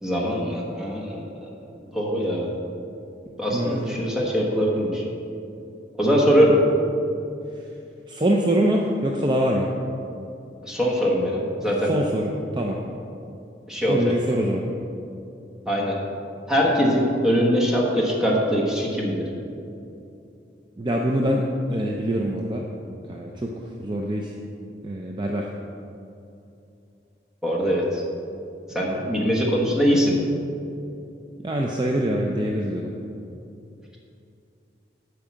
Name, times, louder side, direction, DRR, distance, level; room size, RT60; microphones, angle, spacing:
voice 1, 0.0-1.2 1.9-2.5 3.4-5.0 6.0-6.5 10.6-11.9 13.7-14.1 15.7-16.0 16.5-19.3 27.4-28.0 28.7-30.1, equal, 5° right, -3 dB, 1.3 m, -22 dB
voice 2, 3.5-3.9 6.3-6.6 8.1-9.7 11.9-12.8 13.9-14.6 20.8-21.4 21.7-22.6 23.1-24.3 24.8-25.5 28.9-29.1 31.4-32.9, right 1 dB, 25° right, 0 dB, 0.5 m, -24 dB
8.8 x 4.8 x 7.4 m, 2.7 s
head